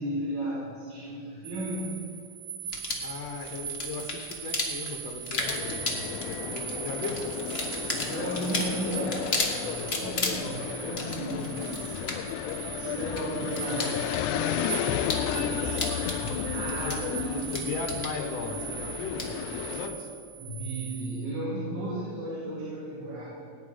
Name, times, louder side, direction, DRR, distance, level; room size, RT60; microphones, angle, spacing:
voice 1, 0.0-2.0 7.9-12.4 12.8-14.0 16.4-17.6 20.4-23.2, right 1 dB, 75° right, -7 dB, 4.0 m, -34 dB
sound 1, 1.4-21.3, right 9 dB, 45° right, 1.4 m, -39 dB
sound 2, 2.7-19.9, left 3 dB, 30° left, 1.1 m, -36 dB
voice 2, 3.0-7.2 14.8-16.4 16.7-17.0 17.5-20.1, left 4 dB, 65° left, 2 dB, 2.3 m, -37 dB
sound 3, 5.4-19.9, left 10 dB, 90° left, 2.0 m, -33 dB
18.5 x 9.6 x 5.0 m, 2.3 s
omnidirectional pair, 3.4 m